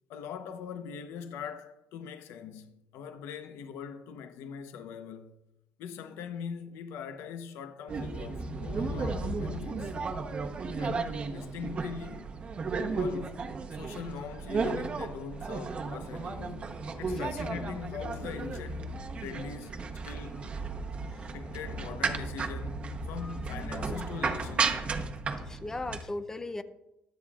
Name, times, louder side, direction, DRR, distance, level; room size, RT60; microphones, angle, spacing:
voice 1, 0.1-5.4 5.8-9.9 10.8-12.3 12.9-16.7 17.0-20.6 21.3-24.9, left 7 dB, 75° left, 0.9 m, -42 dB
sound 1, 7.9-26.0, right 4 dB, 30° right, 1.0 m, -34 dB
voice 2, 23.2-24.0 25.5-26.6, left 2 dB, 10° left, 0.6 m, -39 dB
23.5 x 9.0 x 2.4 m
cardioid pair, 170°, 4 cm